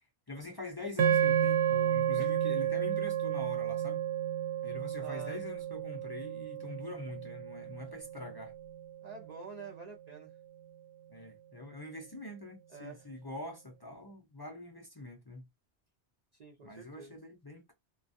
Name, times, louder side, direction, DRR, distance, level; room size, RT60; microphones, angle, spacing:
voice 1, 0.0-4.0 4.6-8.5 11.1-15.5 16.6-17.7, left 2 dB, 40° left, 0.3 m, -44 dB
sound 1, 1.0-9.4, right 10 dB, 85° right, 0.9 m, -32 dB
voice 2, 5.0-5.4 9.0-10.3 12.7-13.0 16.3-17.2, right 5 dB, 50° right, 0.5 m, -47 dB
2.2 x 2.2 x 2.5 m
omnidirectional pair, 1.1 m